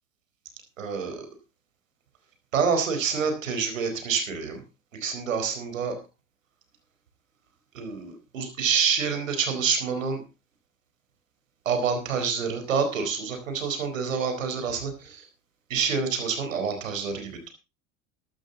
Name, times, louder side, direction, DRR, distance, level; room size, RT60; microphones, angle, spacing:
voice 1, 0.8-1.3 2.5-4.6 4.9-6.0 7.7-10.2 11.6-15.3 15.7-17.5, right 6 dB, 85° right, 7 dB, 4.4 m, -27 dB
14.0 x 12.5 x 3.9 m, 0.29 s
hypercardioid pair, 80°, 38 cm